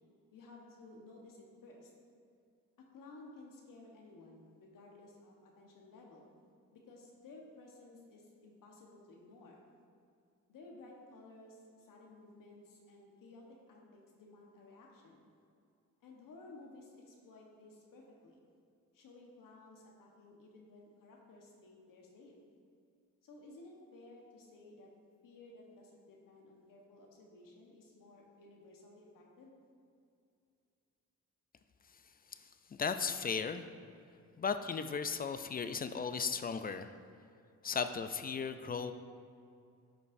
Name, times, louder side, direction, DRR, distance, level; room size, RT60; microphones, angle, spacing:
voice 1, 0.3-1.9 2.8-6.3 6.7-9.6 10.5-15.2 16.0-18.4 18.9-22.4 23.2-24.9 25.2-29.5, left 2 dB, 65° left, -1 dB, 1.2 m, -56 dB
voice 2, 32.8-33.7 34.4-36.9 37.6-38.9, left 5 dB, 25° left, 10 dB, 0.4 m, -36 dB
11.0 x 5.1 x 2.6 m, 2.4 s
cardioid pair, 70°, 35 cm